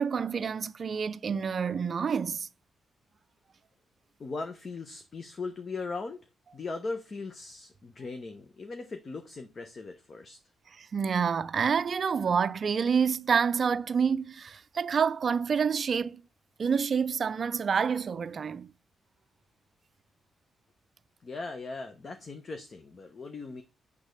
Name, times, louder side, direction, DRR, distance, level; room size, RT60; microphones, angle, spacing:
voice 1, 0.0-2.5 10.7-16.2 16.6-18.7, right 6 dB, 45° right, 0.5 m, -28 dB
voice 2, 4.2-6.2 6.5-10.4 21.2-23.6, left 3 dB, 40° left, 0.9 m, -39 dB
8.4 x 3.5 x 6.6 m
cardioid pair, 130°, 0 cm